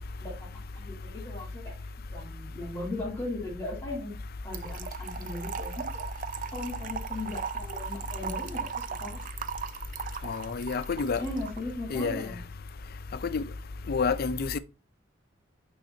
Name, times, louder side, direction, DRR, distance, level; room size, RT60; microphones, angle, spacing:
voice 1, 0.7-4.1 4.4-6.1 6.5-9.2 11.2-12.4, left 2 dB, 15° left, 2.7 m, -38 dB
Trickle dribble / Fill (with liquid), 4.5-11.6, right 7 dB, 45° right, 0.4 m, -38 dB
voice 2, 10.2-11.2 11.9-12.3 13.2-13.4 13.9-14.6, left 5 dB, 55° left, 0.5 m, -29 dB
9.1 x 3.9 x 2.7 m
head